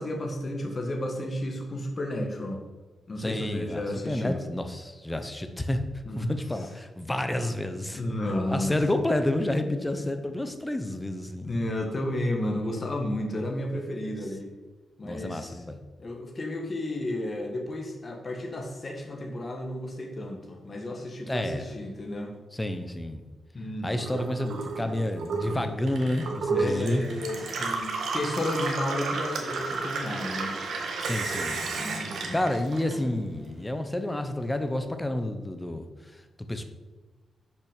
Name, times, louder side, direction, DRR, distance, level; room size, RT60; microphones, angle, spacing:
voice 1, 0.0-2.6 3.1-4.4 6.1-6.3 7.9-8.8 10.0-10.1 11.4-14.5 15.0-15.6 16.0-22.4 23.5-24.1 26.5-30.5 31.8-32.5, left 1 dB, 30° left, 2 dB, 1.4 m, -32 dB
voice 2, 3.2-5.8 6.2-8.0 8.3-11.5 15.0-15.8 21.3-21.7 22.5-23.2 23.8-27.1 31.0-31.6 32.3-35.8 36.5-36.6, left 1 dB, 10° left, 7 dB, 0.8 m, -30 dB
Gurgling / Water tap faucet / Sink (filling or washing), 23.9-33.4 33.8-34.6, right 3 dB, 75° right, 1.5 m, -32 dB
6.9 x 5.6 x 6.6 m, 1.3 s
wide cardioid pair, 140°, 0 cm